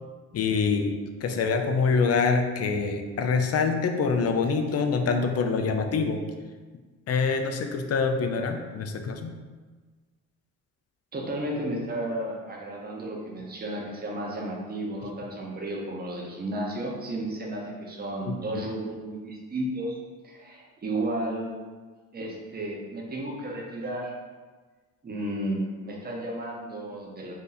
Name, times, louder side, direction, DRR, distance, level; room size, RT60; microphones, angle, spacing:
voice 1, 0.3-6.2 7.1-9.3 18.3-18.7, left 4 dB, 40° left, 5 dB, 0.5 m, -25 dB
voice 2, 11.1-20.0 20.2-21.5 22.1-24.1 25.0-27.3, right 1 dB, 25° right, -2 dB, 0.8 m, -33 dB
2.8 x 2.5 x 3.9 m, 1.4 s
supercardioid pair, 75°, 38 cm